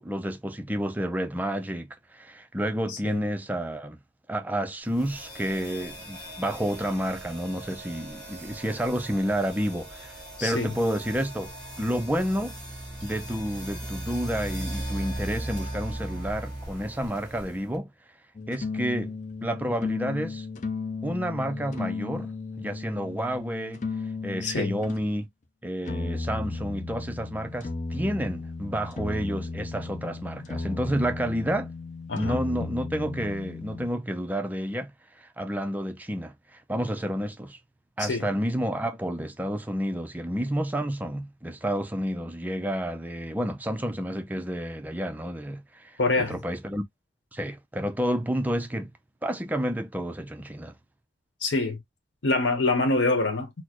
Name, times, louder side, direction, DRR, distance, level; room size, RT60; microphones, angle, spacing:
voice 1, 0.0-4.0 4.3-11.5 11.8-12.6 13.0-17.9 18.5-19.1 19.4-20.5 21.0-22.3 22.6-23.8 24.2-25.3 25.6-31.7 32.1-34.9 35.2-37.6 38.0-46.8 47.3-48.9 49.2-50.7, equal, 10° right, 0.4 m, -30 dB
voice 2, 2.9-3.2 10.4-10.7 24.4-24.8 32.1-32.4 38.0-38.3 46.0-46.4 51.4-51.8 52.2-53.5, left 2 dB, 75° left, 0.9 m, -25 dB
sound 1, 4.9-17.8, right 1 dB, 5° left, 1.7 m, -38 dB
sound 2, 18.3-25.0 25.8-33.9, left 3 dB, 40° left, 0.5 m, -35 dB
4.1 x 2.0 x 2.9 m
head